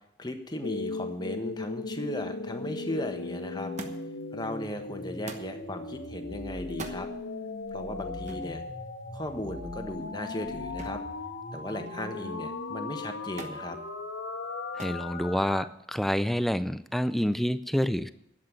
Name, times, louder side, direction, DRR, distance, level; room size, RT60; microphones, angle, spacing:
voice 1, 0.2-3.7 4.3-7.1 7.7-8.6 9.1-11.0 11.5-13.8, left 1 dB, 20° left, 6 dB, 1.2 m, -36 dB
sound 1, 0.6-15.6, left 3 dB, 85° left, 1.4 m, -37 dB
Thump thud, 3.8-4.2 5.3-5.6 6.7-7.0 8.3-8.5 10.8-11.1 11.5-12.0 13.4-13.6 14.8-15.1 16.0-16.5 17.5-17.6, right 3 dB, 40° right, 1.1 m, -42 dB
voice 2, 14.8-18.1, equal, ahead, 13 dB, 0.4 m, -28 dB
11.5 x 7.8 x 8.9 m, 0.77 s
head